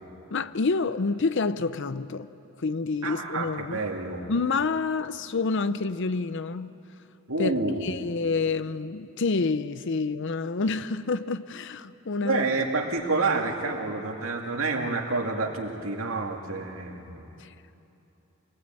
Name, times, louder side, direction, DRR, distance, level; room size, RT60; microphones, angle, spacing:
voice 1, 0.3-2.3 2.6-3.8 4.3-6.8 7.4-7.5 7.8-12.5 17.4-17.5, left 4 dB, 60° left, 0.6 m, -28 dB
voice 2, 3.0-4.3 7.3-7.9 12.2-17.3, right 3 dB, 75° right, 2.4 m, -28 dB
26.0 x 19.5 x 9.0 m
head